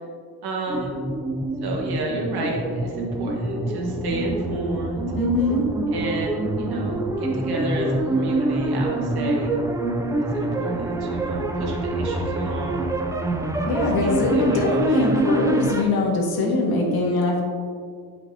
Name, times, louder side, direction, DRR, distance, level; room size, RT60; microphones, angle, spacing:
voice 1, 0.4-1.0 1.6-5.0 5.9-9.5 10.2-12.9 13.7-15.1, right 2 dB, 70° right, -1 dB, 1.6 m, -31 dB
sound 1, 0.7-15.8, right 2 dB, 10° right, 0.3 m, -26 dB
voice 2, 5.1-5.6 13.7-17.4, left 2 dB, 65° left, -1 dB, 1.7 m, -22 dB
11.5 x 5.9 x 2.8 m, 2.2 s
cardioid pair, 175°, 39 cm